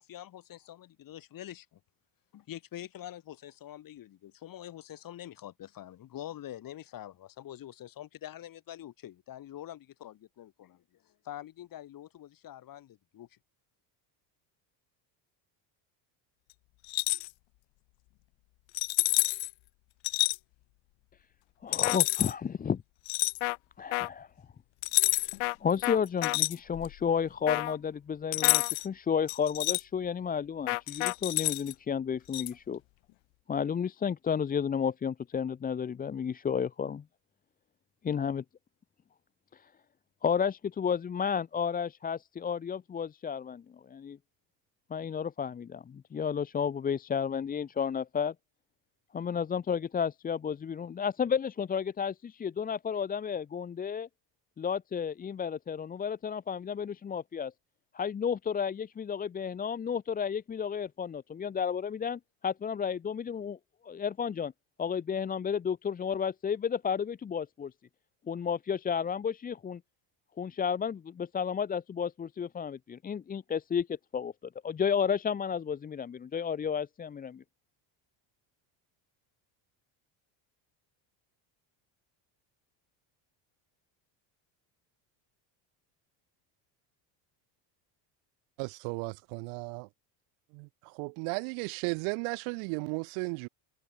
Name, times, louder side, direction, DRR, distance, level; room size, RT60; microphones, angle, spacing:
voice 1, 0.0-1.8 2.3-10.8 11.2-13.4, left 12 dB, 45° left, 4.1 m, -45 dB
sound 1, 16.8-17.3 18.7-19.5 20.0-20.4 21.7-22.3 23.1-23.4 24.8-25.4 25.8-27.0 28.3-28.9 29.3-29.8 30.9-31.7 32.3-32.5, left 24 dB, 65° left, 1.8 m, -28 dB
voice 2, 21.6-22.8 23.8-24.3 25.1-25.2 25.6-32.8 33.5-37.0 38.0-38.4 39.5-39.7 40.2-44.2 44.9-48.3 49.1-54.1 54.6-57.5 57.9-63.6 63.8-64.5 64.8-67.7 68.3-69.8 70.4-74.3 74.6-77.4, left 7 dB, 20° left, 0.7 m, -32 dB
sound 2, 21.8-22.0 23.4-23.6 23.9-24.1 25.4-25.6 25.8-26.4 27.5-27.8 28.4-28.7 30.7-31.1, left 38 dB, 85° left, 1.0 m, -31 dB
voice 3, 88.6-89.9 90.5-90.7 91.0-93.5, right 40 dB or more, 85° right, 1.4 m, -35 dB
cardioid pair, 145°, 48 cm